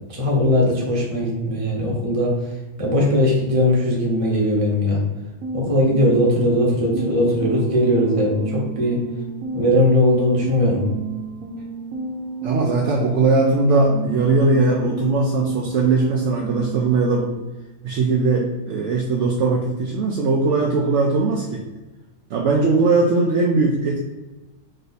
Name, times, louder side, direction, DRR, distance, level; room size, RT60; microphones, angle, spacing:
voice 1, 0.1-2.5 2.8-5.0 5.5-9.0 9.5-10.8, left 1 dB, 25° right, -4 dB, 0.9 m, -19 dB
sound 1, 5.4-13.1 13.4-17.4, right 3 dB, 80° right, 1.2 m, -31 dB
voice 2, 12.4-17.3 17.8-21.6 22.3-24.0, right 3 dB, 65° right, -1 dB, 0.8 m, -19 dB
3.8 x 2.6 x 4.0 m, 1.1 s
omnidirectional pair, 1.5 m